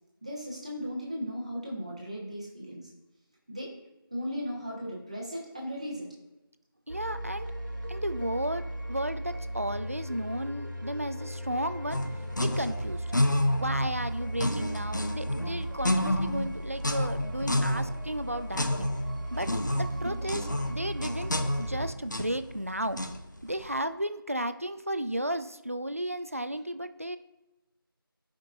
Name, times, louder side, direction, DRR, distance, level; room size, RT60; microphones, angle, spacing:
voice 1, 0.2-2.9 3.5-3.7 4.1-6.1 20.0-20.1, equal, 15° right, -4 dB, 1.1 m, -36 dB
voice 2, 6.9-7.5 7.9-8.6 8.9-12.0 12.4-13.0 13.6-18.9 19.3-19.5 19.7-21.3 21.6-23.0 23.4-27.2, right 1 dB, 35° right, 11 dB, 0.4 m, -33 dB
sound 1, 6.9-21.9, right 1 dB, 55° right, 1.6 m, -37 dB
sound 2, 11.9-23.6, left 1 dB, 55° left, 0.8 m, -30 dB
15.5 x 5.2 x 2.6 m, 0.99 s
figure-of-eight pair, 170°, 12 cm